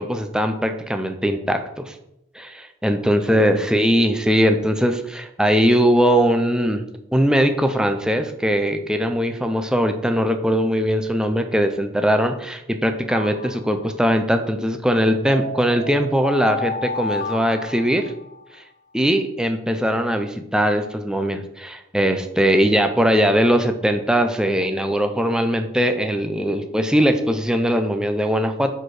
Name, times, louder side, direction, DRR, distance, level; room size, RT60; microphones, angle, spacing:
voice 1, 0.0-1.9 2.3-6.9 7.1-18.1 18.9-28.7, equal, 5° right, 7 dB, 0.6 m, -20 dB
sound 1, 13.1-14.1 15.2-18.5, left 2 dB, 50° left, 0.7 m, -31 dB
9.5 x 4.4 x 4.9 m, 0.82 s
head